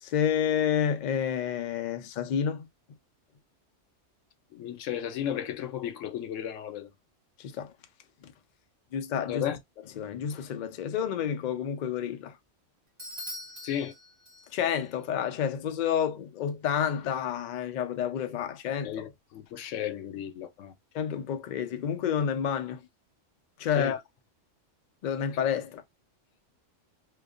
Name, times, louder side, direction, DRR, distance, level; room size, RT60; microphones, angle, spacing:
voice 1, 0.0-2.7 7.4-7.7 8.2-8.3 8.9-9.4 10.0-12.4 14.5-18.9 20.9-22.8 23.6-24.0 25.0-25.8, left 8 dB, 65° left, 0.4 m, -29 dB
voice 2, 4.5-6.9 9.3-9.6 13.6-13.9 18.8-20.7 23.8-24.0, left 10 dB, 85° left, 1.0 m, -34 dB
Bell / Doorbell, 13.0-14.8, left 1 dB, 25° right, 1.1 m, -43 dB
2.5 x 2.3 x 2.3 m
omnidirectional pair, 1.3 m